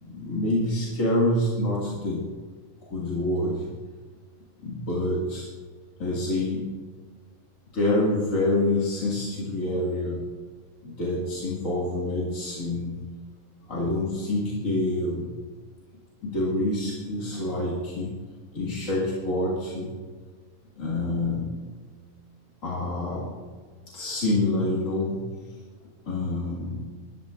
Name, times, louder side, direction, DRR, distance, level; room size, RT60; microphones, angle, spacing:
voice 1, 0.0-2.2 2.9-3.7 4.6-5.5 6.0-6.7 7.7-10.2 10.8-13.0 13.7-15.3 16.2-18.1 18.5-19.9 20.8-21.5 22.6-23.3 23.9-25.2 26.1-26.8, left 1 dB, 70° left, -6 dB, 2.6 m, -27 dB
19.0 x 12.5 x 2.5 m, 1.5 s
omnidirectional pair, 1.5 m